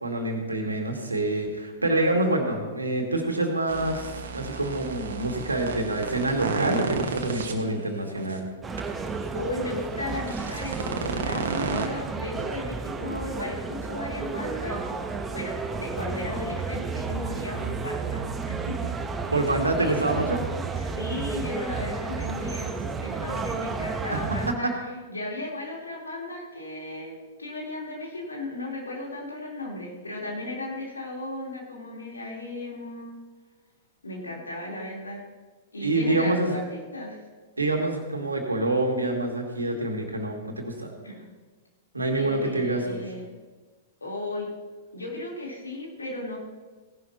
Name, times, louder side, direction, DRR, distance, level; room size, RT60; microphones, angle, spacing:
voice 1, 0.0-8.4 19.3-20.5 24.5-24.7 35.8-36.5 37.6-40.9 41.9-43.1, right 2 dB, 90° right, 2 dB, 2.2 m, -26 dB
sound 1, 3.7-7.5 8.2-8.3 8.8-8.9 10.1-11.9, right 5 dB, 70° right, 1.5 m, -32 dB
voice 2, 7.5-7.8 9.3-14.9 15.3-18.9 19.4-19.5 20.8-24.7 25.1-33.1 34.0-35.2 35.7-37.2 41.0-41.3 42.2-43.3 44.0-44.5 44.9-46.4, left 2 dB, 85° left, -2 dB, 3.5 m, -35 dB
sound 2, 8.6-24.5, right 4 dB, 15° right, 1.0 m, -32 dB
17.5 x 11.0 x 2.9 m, 1.3 s
figure-of-eight pair, 105°, 0 cm